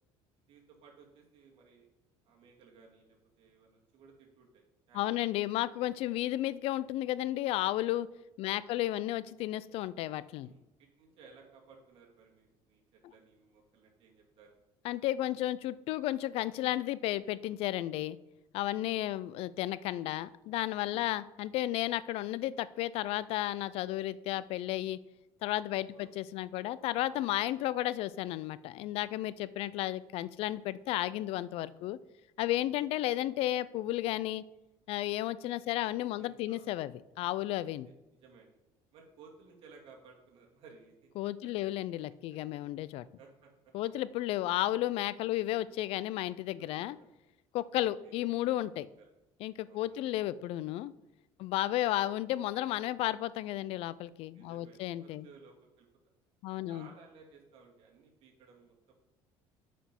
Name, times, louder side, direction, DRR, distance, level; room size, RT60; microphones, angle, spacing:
voice 1, 0.5-1.9 2.2-5.2 8.4-8.8 10.4-14.5 18.7-19.1 20.9-21.1 25.9-26.4 32.5-32.6 35.8-36.7 37.8-37.9 38.2-38.5 38.9-41.1 41.4-41.8 42.3-42.4 43.2-43.5 45.3-45.4 46.8-46.9 48.0-48.2 49.0-49.1 49.7-50.1 54.3-55.9 56.5-58.9, right 5 dB, 60° right, 0 dB, 2.3 m, -58 dB
voice 2, 4.9-8.1 8.4-10.5 14.8-18.2 18.5-25.0 25.4-32.0 32.4-34.4 34.9-36.9 37.2-37.9 41.2-43.0 43.7-47.0 47.5-48.9 49.4-50.9 51.4-55.3 56.4-56.9, left 14 dB, 65° left, 18 dB, 0.4 m, -33 dB
8.8 x 5.1 x 5.3 m, 0.95 s
cardioid pair, 130°, 11 cm